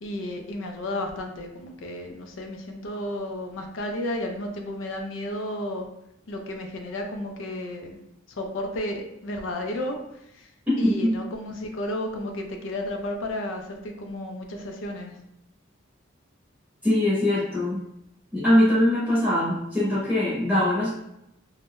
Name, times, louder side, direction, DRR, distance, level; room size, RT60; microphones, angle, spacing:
voice 1, 0.0-5.9 6.3-8.0 8.4-10.0 10.3-10.5 10.8-15.1, left 1 dB, 65° left, 3 dB, 0.4 m, -32 dB
voice 2, 10.8-11.1 16.8-17.8 18.3-20.9, left 1 dB, 5° right, -9 dB, 0.8 m, -22 dB
2.5 x 2.1 x 3.6 m, 0.81 s
head